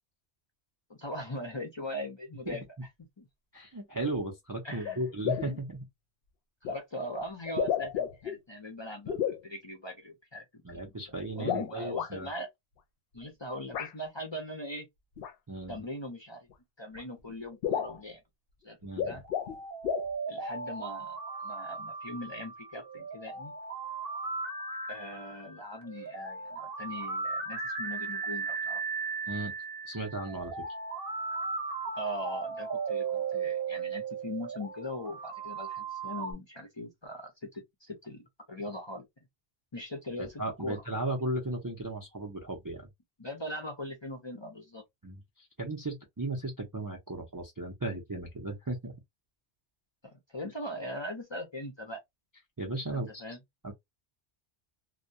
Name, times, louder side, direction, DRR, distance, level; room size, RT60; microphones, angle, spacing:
voice 1, 0.9-2.6 3.2-3.3 4.6-5.0 6.6-10.8 11.4-12.5 13.1-14.9 15.7-16.5 16.8-18.2 18.6-18.8 19.0-19.2 20.3-21.2 21.4-23.5 24.9-28.8 32.0-38.2 38.5-39.1 39.7-40.3 40.6-40.8 43.2-44.8 50.0-52.0 52.9-53.4, equal, 35° left, 0.5 m, -40 dB
voice 2, 3.5-5.8 10.6-12.3 15.5-15.8 18.8-19.2 29.3-29.5 29.8-30.5 40.2-42.9 45.0-49.0 50.4-50.5 52.6-53.4 53.6-53.7, right 2 dB, 30° right, 0.4 m, -36 dB
sound 1, 4.8-4.9 5.2-5.6 6.6-6.8 7.4-8.4 9.1-9.4 11.4-12.1 13.7-13.9 15.2-15.3 16.5-16.6 17.0-17.1 17.3-17.4 17.6-18.0 18.8-19.6 19.8-20.1, left 9 dB, 65° left, 0.7 m, -32 dB
sound 2, 19.2-36.3, right 4 dB, 60° right, 0.9 m, -37 dB
2.2 x 2.2 x 2.6 m
omnidirectional pair, 1.1 m